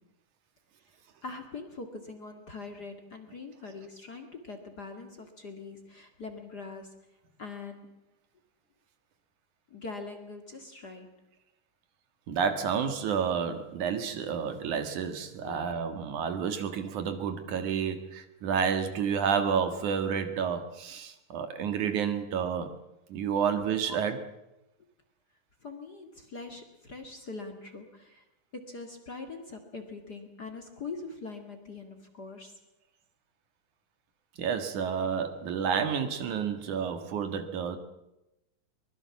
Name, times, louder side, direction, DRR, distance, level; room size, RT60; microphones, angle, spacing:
voice 1, 1.2-7.0 7.4-7.9 9.7-11.1 15.4-15.7 23.4-23.5 23.8-24.0 25.6-28.2 28.5-32.5, left 3 dB, 35° left, 5 dB, 2.2 m, -43 dB
voice 2, 12.3-22.7 23.1-24.2 34.4-37.8, right 7 dB, 65° right, 9 dB, 3.0 m, -30 dB
23.5 x 20.5 x 7.2 m, 0.90 s
omnidirectional pair, 3.9 m